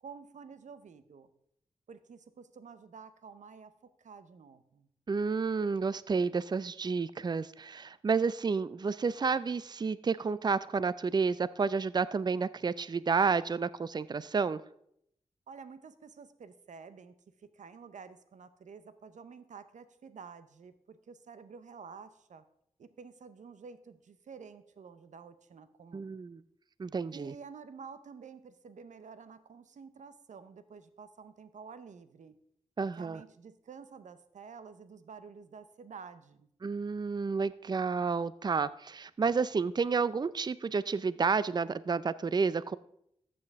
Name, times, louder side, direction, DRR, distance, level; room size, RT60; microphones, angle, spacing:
voice 1, 0.0-1.3 1.9-4.9 15.5-17.1 17.4-22.4 22.8-26.2 27.1-32.3 33.0-36.5, right 5 dB, 85° right, 12 dB, 0.7 m, -50 dB
voice 2, 5.1-14.6 25.9-26.4 26.8-27.3 32.8-33.2 36.6-42.8, right 5 dB, 35° right, 17 dB, 0.4 m, -30 dB
13.5 x 7.8 x 3.5 m, 0.73 s
cardioid pair, 65°, 12 cm